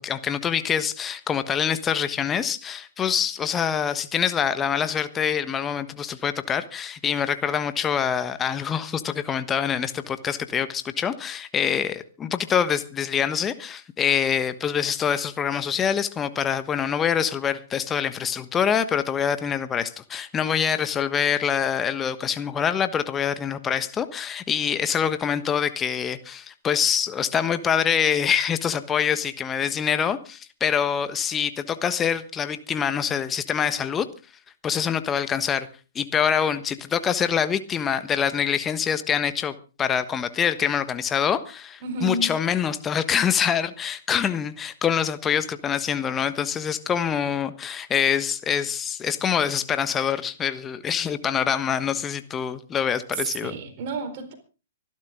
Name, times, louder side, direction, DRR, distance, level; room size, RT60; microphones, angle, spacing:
voice 1, 0.0-34.1 34.6-35.7 35.9-53.5, left 8 dB, 20° left, 1.3 m, -25 dB
voice 2, 41.8-42.3 53.1-54.3, right 3 dB, 45° right, 4.3 m, -30 dB
25.0 x 12.0 x 3.8 m
figure-of-eight pair, 115°, 0 cm